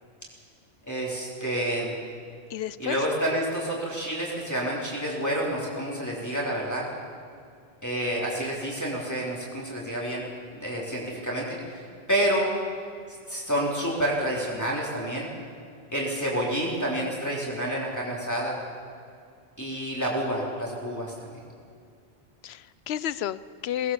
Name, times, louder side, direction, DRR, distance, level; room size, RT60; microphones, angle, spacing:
voice 1, 0.8-1.9 2.8-6.9 7.8-10.2 10.5-11.6 12.1-12.5 13.3-15.3 15.9-18.6 19.6-21.1, right 1 dB, 15° left, -5 dB, 3.8 m, -28 dB
voice 2, 2.5-3.0 22.4-23.9, left 10 dB, 70° left, 17 dB, 0.9 m, -31 dB
19.5 x 18.0 x 7.3 m, 2.4 s
omnidirectional pair, 1.1 m